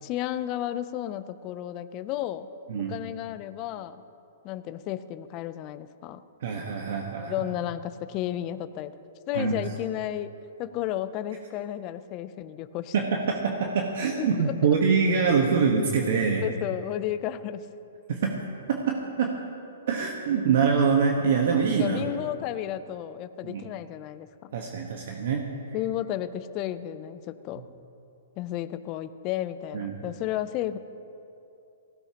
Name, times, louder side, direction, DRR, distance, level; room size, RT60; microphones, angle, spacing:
voice 1, 0.0-2.5 2.9-4.0 4.4-6.2 7.2-9.0 9.3-10.3 10.6-12.9 14.2-14.8 16.4-17.7 21.8-24.5 25.7-27.6 28.4-30.8, left 12 dB, 35° left, 12 dB, 0.5 m, -33 dB
voice 2, 6.4-7.3 9.3-9.5 12.9-16.4 18.1-18.4 18.7-19.3 19.9-22.0 23.4-23.6 24.5-25.4 29.7-29.9, right 5 dB, 65° right, 1 dB, 1.3 m, -24 dB
18.5 x 16.0 x 2.9 m, 2.7 s
hypercardioid pair, 140°, 0 cm